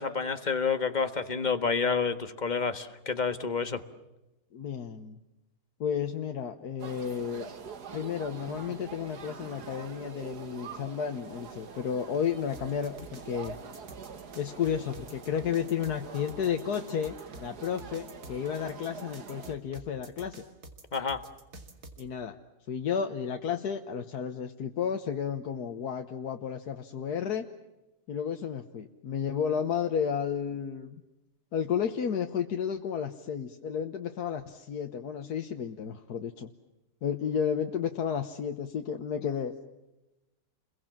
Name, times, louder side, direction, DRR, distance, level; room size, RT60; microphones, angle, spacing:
voice 1, 0.0-3.8 20.9-21.2, left 5 dB, 30° left, 9 dB, 1.6 m, -29 dB
voice 2, 4.5-5.2 5.8-7.5 7.9-13.6 14.4-20.4 22.0-22.4 22.7-27.5 28.1-31.0 31.5-36.5 37.0-39.5, left 7 dB, 85° left, 5 dB, 1.7 m, -32 dB
sound 1, 6.8-19.6, right 5 dB, 90° right, 2.2 m, -45 dB
sound 2, 12.5-22.0, right 2 dB, 70° right, 2.9 m, -49 dB
30.0 x 22.5 x 7.5 m, 0.99 s
omnidirectional pair, 1.7 m